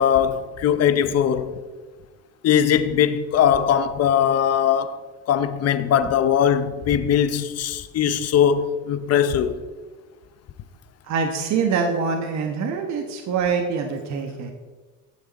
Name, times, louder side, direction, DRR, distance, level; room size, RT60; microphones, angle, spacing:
voice 1, 0.0-1.6 2.4-5.0 5.3-9.5, left 9 dB, 45° left, 0.8 m, -20 dB
voice 2, 11.0-14.5, right 5 dB, 55° right, 1.2 m, -24 dB
16.0 x 6.1 x 4.2 m
cardioid pair, 100°, 34 cm